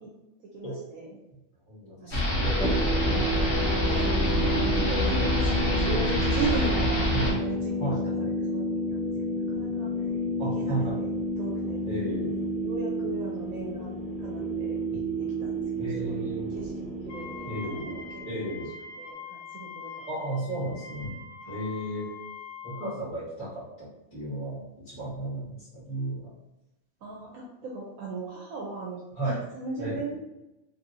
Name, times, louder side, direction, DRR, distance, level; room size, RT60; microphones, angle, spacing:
voice 1, 0.4-1.2 2.0-2.2 2.8-7.8 8.2-8.6 8.9-9.9 10.5-11.8 12.3-18.6 19.0-20.0 21.4-21.6 27.0-30.2, right 3 dB, 85° right, -2 dB, 1.0 m, -38 dB
voice 2, 1.7-2.2 2.5-2.7 7.1-7.3 7.8-8.0 10.4-11.0 11.8-12.3 15.8-16.5 17.4-17.8 18.2-18.7 20.1-21.2 21.5-22.1 22.6-24.6 24.8-26.3 29.1-29.4 29.8-30.0, right 1 dB, 20° left, -10 dB, 1.4 m, -33 dB
sound 1, 2.1-7.3, left 1 dB, 50° left, 1.0 m, -26 dB
sound 2, 2.4-18.7, equal, ahead, 0.4 m, -31 dB
Wind instrument woodwind instrument, 17.1-23.0, left 5 dB, 85° left, 1.1 m, -43 dB
3.0 x 2.7 x 2.6 m, 0.94 s
omnidirectional pair, 1.4 m